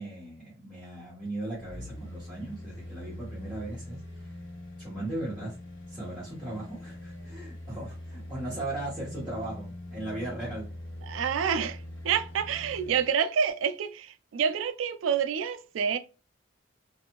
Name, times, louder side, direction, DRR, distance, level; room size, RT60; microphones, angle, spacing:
voice 1, 0.0-4.3 4.8-5.6 5.9-10.7, right 1 dB, 5° right, 1.0 m, -37 dB
sound 1, 1.5-13.1 13.5-13.6, left 1 dB, 80° left, 1.0 m, -43 dB
voice 2, 11.1-16.0, right 7 dB, 80° right, 0.3 m, -28 dB
2.6 x 2.4 x 2.9 m
head